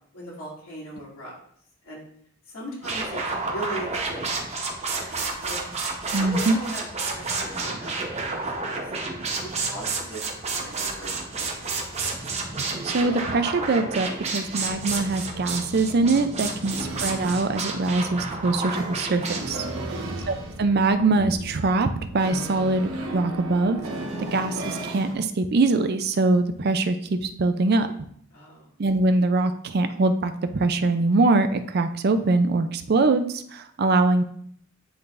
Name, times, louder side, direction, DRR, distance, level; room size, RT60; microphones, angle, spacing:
voice 1, 0.1-1.3 1.8-2.0 2.5-4.3 4.9-5.6 6.2-6.8 7.1-9.1 9.4-10.2 10.5-11.5 19.7-20.2 28.3-28.7, right 1 dB, 80° left, -6 dB, 2.8 m, -39 dB
sound 1, 2.8-19.5, right 3 dB, 30° right, 0.9 m, -30 dB
voice 2, 6.1-6.6 12.6-19.7 20.3-23.8 24.2-27.9 28.8-34.2, right 3 dB, 45° right, 9 dB, 0.4 m, -23 dB
sound 2, 14.7-25.1, right 1 dB, 80° right, 1.3 m, -36 dB
10.5 x 3.8 x 2.5 m, 0.65 s
head